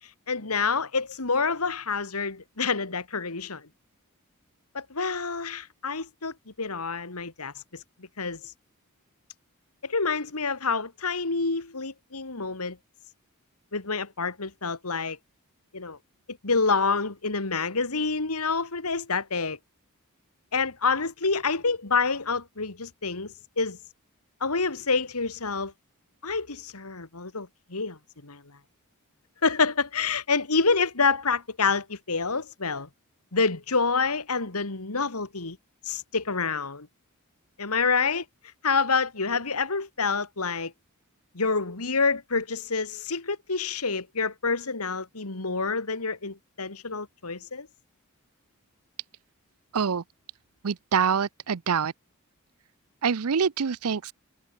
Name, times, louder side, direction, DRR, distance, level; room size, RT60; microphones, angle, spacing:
voice 1, 0.3-3.7 4.7-8.5 9.8-12.8 13.7-15.2 15.7-16.0 16.3-19.6 20.5-23.8 24.4-25.7 26.2-28.6 29.4-32.9 33.3-35.6 35.8-36.9 37.6-38.3 38.6-40.7 41.3-47.7, left 4 dB, 85° left, 2.3 m, -27 dB
voice 2, 49.7-50.0 50.6-51.9 53.0-54.1, right 6 dB, 75° right, 0.6 m, -25 dB
head